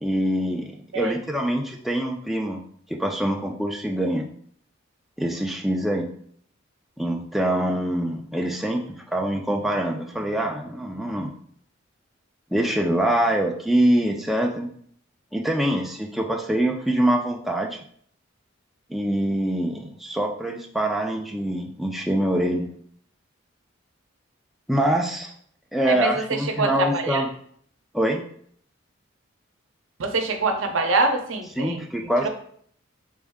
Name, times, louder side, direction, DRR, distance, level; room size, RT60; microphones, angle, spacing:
voice 1, 0.0-2.6 2.9-4.3 5.2-6.1 7.0-8.8 9.1-11.3 12.5-14.7 15.3-17.8 18.9-22.7 24.7-25.3 25.7-27.3 27.9-28.2 31.6-32.3, right 1 dB, ahead, 1 dB, 0.3 m, -24 dB
voice 2, 25.8-27.2 30.0-31.8 32.2-32.3, right 3 dB, 75° right, 5 dB, 0.6 m, -25 dB
3.6 x 3.1 x 3.5 m, 0.62 s
head